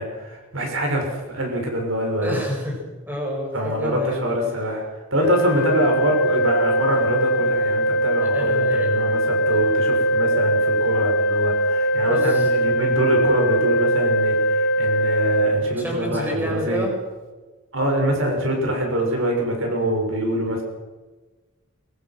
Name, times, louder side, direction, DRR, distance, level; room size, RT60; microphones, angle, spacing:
voice 1, 0.0-2.4 3.5-4.8 5.1-16.9 17.7-20.6, right 1 dB, 65° right, 1 dB, 6.7 m, -24 dB
voice 2, 2.2-2.8 3.1-4.2 5.6-5.8 8.3-8.9 11.9-12.5 15.8-16.9, equal, 10° right, -1 dB, 7.5 m, -28 dB
Organ, 5.2-16.2, right 1 dB, 60° left, 3.9 m, -21 dB
25.0 x 23.0 x 6.2 m, 1.2 s
head